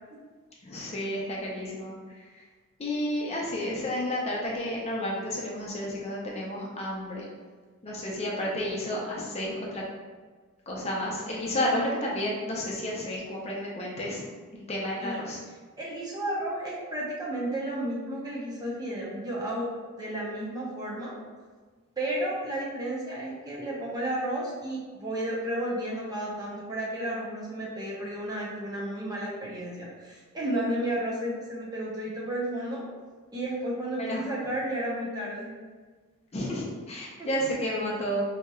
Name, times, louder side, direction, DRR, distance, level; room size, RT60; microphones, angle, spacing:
voice 1, 0.6-1.9 2.3-2.4 2.8-7.2 7.8-9.8 10.7-14.2 14.5-15.4 34.0-34.2 36.3-38.2, left 1 dB, 30° left, -3 dB, 0.6 m, -31 dB
voice 2, 15.8-19.7 20.0-21.1 22.0-32.8 33.3-35.5 37.2-37.3, right 1 dB, 20° right, -5 dB, 0.6 m, -32 dB
4.4 x 2.8 x 2.3 m, 1.4 s
head